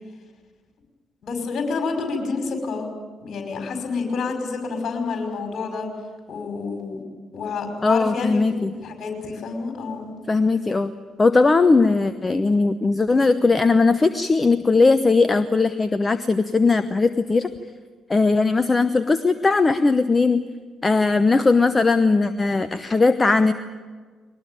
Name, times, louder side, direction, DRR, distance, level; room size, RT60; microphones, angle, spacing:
voice 1, 1.2-2.9 3.2-5.9 6.3-7.0 7.3-10.1, left 4 dB, 50° left, 4 dB, 5.5 m, -28 dB
voice 2, 7.8-8.7 10.3-10.9 11.2-17.5 18.1-20.4 20.8-23.5, left 3 dB, 25° left, 12 dB, 0.9 m, -19 dB
22.5 x 19.5 x 9.0 m, 1.4 s
figure-of-eight pair, 45°, 0 cm